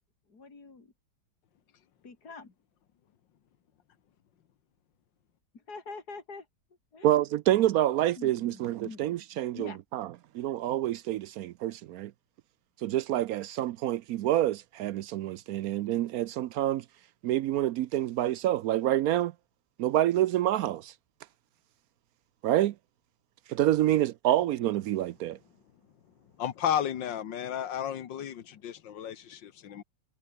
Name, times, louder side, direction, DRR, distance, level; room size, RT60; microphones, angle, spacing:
voice 1, 0.3-0.9 2.0-2.5 5.5-6.5 6.9-7.1 8.2-9.1 9.5-9.8, left 4 dB, 55° left, 4.0 m, -45 dB
voice 2, 7.0-10.1 10.3-12.1 12.8-16.8 17.2-19.3 19.8-20.9 22.4-22.7 23.5-25.4, right 13 dB, 75° right, 0.8 m, -27 dB
voice 3, 26.4-29.8, left 9 dB, 75° left, 1.9 m, -33 dB
omnidirectional pair, 2.0 m